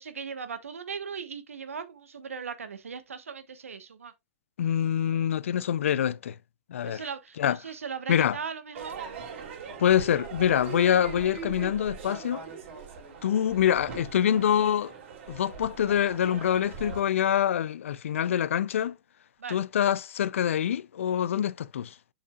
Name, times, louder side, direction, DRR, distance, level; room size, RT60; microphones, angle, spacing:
voice 1, 0.0-4.1 6.8-9.0 19.4-19.6, right 6 dB, 85° right, 1.2 m, -38 dB
voice 2, 4.6-6.4 6.7-7.0 7.4-7.6 8.1-8.4 9.8-12.4 13.2-14.9 15.3-19.0 19.5-21.9, left 9 dB, 70° left, 0.4 m, -25 dB
Crowd / Fireworks, 8.7-17.0, right 6 dB, 65° right, 3.1 m, -41 dB
7.4 x 7.1 x 2.4 m
hypercardioid pair, 110°, 7 cm